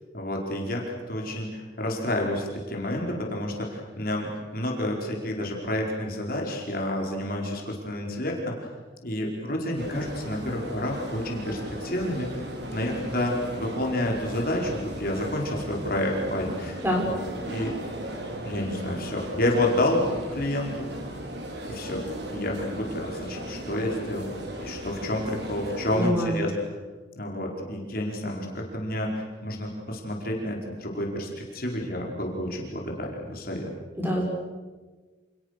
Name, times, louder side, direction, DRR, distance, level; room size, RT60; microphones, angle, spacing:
voice 1, 0.1-8.7 9.0-16.8 17.1-17.2 17.5-17.8 18.4-20.9 21.7-26.5 27.1-33.7, left 1 dB, 50° left, -1 dB, 4.8 m, -29 dB
sound 1, 9.8-26.1, equal, 60° right, 4.8 m, -37 dB
voice 2, 25.9-26.4 34.0-34.2, equal, 10° right, -1 dB, 6.5 m, -25 dB
29.0 x 28.0 x 6.7 m, 1.3 s
head